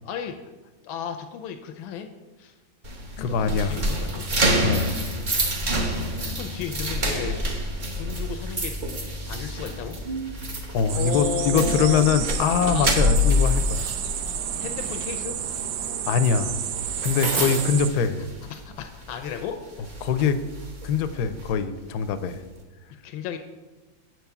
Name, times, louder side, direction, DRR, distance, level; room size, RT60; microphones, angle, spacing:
voice 1, 0.0-0.3 0.8-2.1 2.4-2.5 3.2-4.3 6.1-7.4 8.0-8.7 9.3-10.0 10.9-12.1 12.7-12.9 14.6-15.3 17.4-17.6 18.5-19.6 23.0-23.4, left 8 dB, 85° left, 6 dB, 1.4 m, -33 dB
sound 1, 2.8-18.8 19.1-19.4 19.8-21.5, equal, 35° right, 0.8 m, -27 dB
voice 2, 3.2-3.8 4.6-5.0 10.7-14.0 16.1-16.6 17.0-18.3 20.0-20.4 20.8-22.4, left 6 dB, 70° left, 11 dB, 1.0 m, -23 dB
sound 2, 10.9-17.9, right 9 dB, 80° right, 1.3 m, -31 dB
7.8 x 4.6 x 6.9 m, 1.2 s
omnidirectional pair, 2.1 m